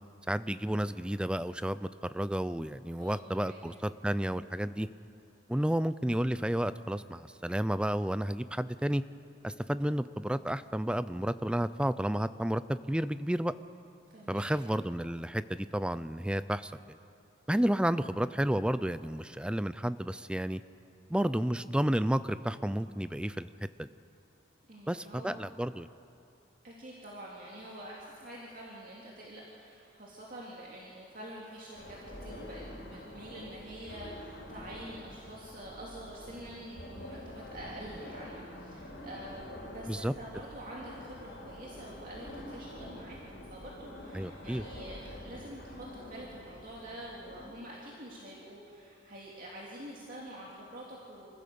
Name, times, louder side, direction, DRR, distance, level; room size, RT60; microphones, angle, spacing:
voice 1, 0.3-4.9 5.5-9.0 9.4-13.5 14.3-16.7 17.5-20.6 21.1-23.5 23.8-23.9 24.9-25.9 39.9-40.1 44.1-44.6, right 1 dB, 5° right, 14 dB, 0.4 m, -31 dB
voice 2, 3.0-3.6 14.1-14.5 24.7-25.4 26.6-51.3, right 1 dB, 45° right, -4 dB, 2.6 m, -46 dB
sound 1, 31.7-47.5, left 1 dB, 75° left, 4.5 m, -46 dB
27.0 x 15.5 x 6.9 m, 2.7 s
head